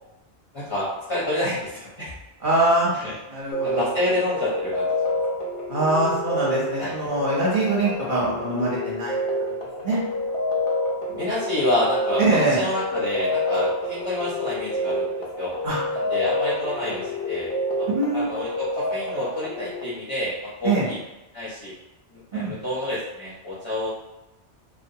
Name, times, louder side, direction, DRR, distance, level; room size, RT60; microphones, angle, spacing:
voice 1, 0.5-2.1 2.9-3.1 3.6-5.2 6.8-6.9 11.2-15.0 15.4-15.5 15.9-17.5 17.8-17.9 18.1-21.0 21.3-21.7 22.1-24.1, left 1 dB, 30° left, -9 dB, 0.6 m, -28 dB
voice 2, 2.4-3.0 3.3-3.9 5.7-9.2 9.8-10.0 11.1-11.2 12.2-12.6 15.6-15.8 17.9-18.3 20.6-20.9 22.4-22.5, right 2 dB, 50° right, -7 dB, 0.8 m, -23 dB
sound 1, 3.5-19.8, left 1 dB, 80° left, 0.9 m, -28 dB
2.4 x 2.2 x 2.7 m, 0.97 s
omnidirectional pair, 1.2 m